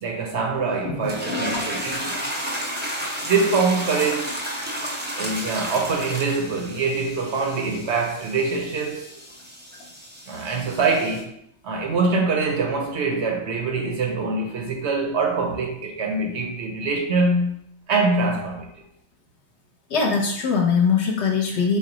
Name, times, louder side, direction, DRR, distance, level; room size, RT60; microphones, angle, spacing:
voice 1, 0.0-2.2 3.2-4.4 5.2-9.1 10.3-17.5 17.9-18.7, right 3 dB, 65° right, 0.8 m, -24 dB
sound 1, 1.0-11.2, equal, 15° right, 0.4 m, -32 dB
voice 2, 19.9-21.8, left 5 dB, 60° left, 0.9 m, -21 dB
4.1 x 2.0 x 3.8 m
omnidirectional pair, 1.4 m